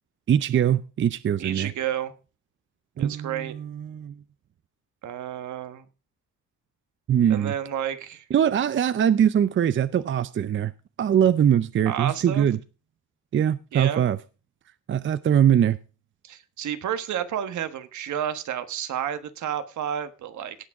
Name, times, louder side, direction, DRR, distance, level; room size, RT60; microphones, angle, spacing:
voice 1, 0.3-1.7 3.0-4.1 7.1-7.5 8.3-10.7 11.0-12.6 13.3-14.2 14.9-15.8, right 9 dB, 40° right, 15 dB, 0.6 m, -22 dB
voice 2, 1.4-2.1 3.0-3.5 5.0-5.9 7.3-8.3 11.8-12.5 13.7-14.0 16.2-20.6, right 10 dB, 70° right, 11 dB, 1.4 m, -31 dB
17.5 x 6.2 x 4.8 m, 0.33 s
cardioid pair, 90°, 30 cm